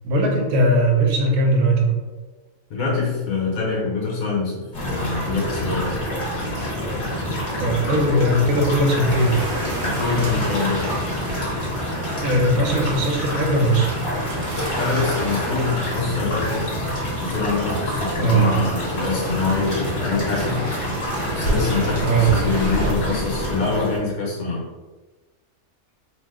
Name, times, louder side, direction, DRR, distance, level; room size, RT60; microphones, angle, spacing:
voice 1, 0.0-2.0 7.6-9.4 12.2-14.0 18.2-18.5 22.0-22.3, right 1 dB, 75° right, 1 dB, 1.0 m, -19 dB
voice 2, 2.7-5.9 9.8-10.8 14.8-16.7 17.2-20.6 21.3-24.6, left 4 dB, 80° left, -4 dB, 1.3 m, -25 dB
sound 1, 4.7-24.0, equal, 55° left, 1.3 m, -26 dB
sound 2, 9.1-22.9, right 1 dB, 55° right, 0.8 m, -35 dB
2.9 x 2.0 x 3.4 m, 1.2 s
omnidirectional pair, 1.5 m